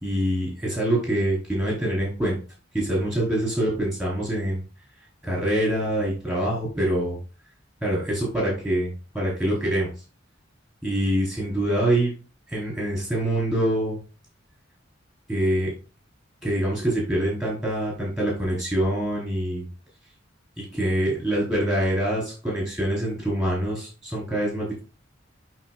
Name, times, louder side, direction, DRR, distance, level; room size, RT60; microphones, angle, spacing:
voice 1, 0.0-2.4 2.7-4.6 5.2-7.2 7.8-8.9 9.1-9.9 10.8-12.1 12.5-14.0 15.3-15.7 16.4-19.7 20.6-24.8, right 1 dB, 5° right, -4 dB, 4.3 m, -25 dB
12.5 x 4.4 x 2.5 m, 0.33 s
head